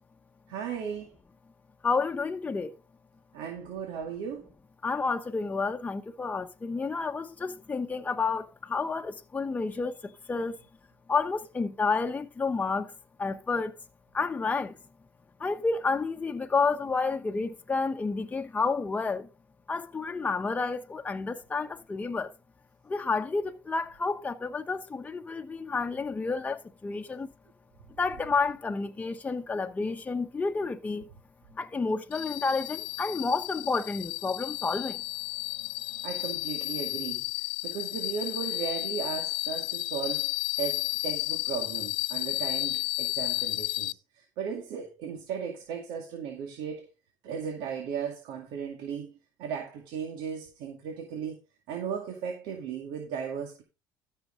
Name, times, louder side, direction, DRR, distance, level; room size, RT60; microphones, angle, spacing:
voice 1, 0.5-1.1 3.3-4.5 36.0-46.9 47.2-49.1 49.4-51.4 51.7-53.6, right 7 dB, 80° right, 2.1 m, -36 dB
voice 2, 1.8-2.7 4.8-10.5 11.1-12.9 13.2-13.7 14.1-14.8 15.4-19.3 19.7-22.3 22.8-27.3 28.0-31.1 31.5-35.0, left 4 dB, 20° left, 1.0 m, -30 dB
sound 1, 32.1-43.9, left 21 dB, 80° left, 0.4 m, -32 dB
13.5 x 6.7 x 3.8 m
cardioid pair, 100°, 8 cm